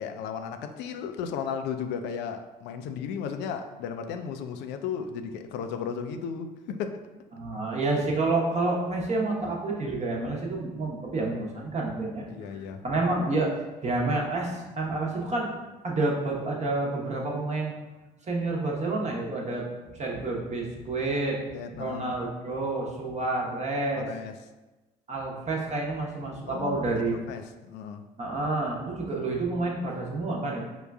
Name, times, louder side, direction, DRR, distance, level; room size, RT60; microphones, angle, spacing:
voice 1, 0.0-7.0 12.3-12.8 21.5-22.1 24.0-24.4 26.5-28.1, left 7 dB, 60° left, 7 dB, 0.4 m, -35 dB
voice 2, 7.3-13.5 13.8-15.6 15.8-17.7 18.3-19.6 19.9-21.4 21.8-24.1 25.1-27.2 28.2-30.6, right 2 dB, 35° right, -2 dB, 0.9 m, -29 dB
5.3 x 2.2 x 2.3 m, 1.1 s
hypercardioid pair, 50°, 21 cm